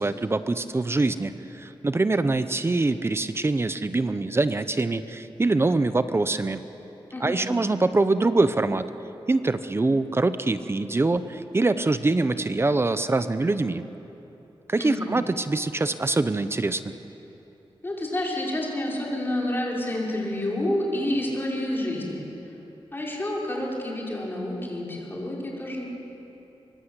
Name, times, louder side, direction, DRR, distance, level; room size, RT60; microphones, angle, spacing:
voice 1, 0.0-6.6 7.2-8.9 9.3-13.8 14.7-16.9, right 2 dB, 25° right, 11 dB, 0.8 m, -24 dB
voice 2, 7.1-7.5 14.8-15.1 17.8-22.3 22.9-25.8, left 1 dB, 25° left, -3 dB, 5.6 m, -29 dB
25.0 x 24.5 x 8.2 m, 3.0 s
wide cardioid pair, 150°, 9 cm